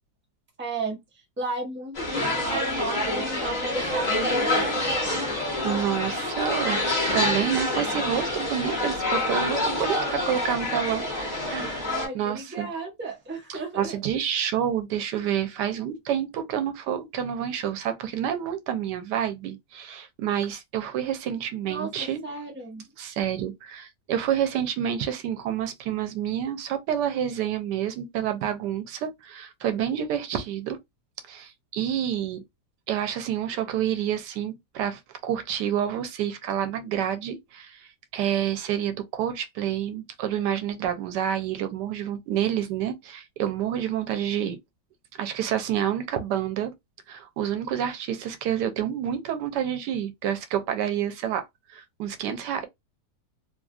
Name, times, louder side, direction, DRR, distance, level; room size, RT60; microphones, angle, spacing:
voice 1, 0.6-1.0 1.4-5.1 11.9-14.0 21.6-22.8, right 3 dB, 10° right, 0.7 m, -34 dB
sound 1, 1.9-12.1, left 1 dB, 25° left, 1.3 m, -27 dB
voice 2, 5.6-11.1 11.5-12.7 13.5-22.2 23.0-30.8 31.3-32.4 32.9-44.6 45.2-46.7 47.1-52.7, right 9 dB, 90° right, 1.2 m, -28 dB
3.1 x 2.4 x 2.3 m
omnidirectional pair, 1.8 m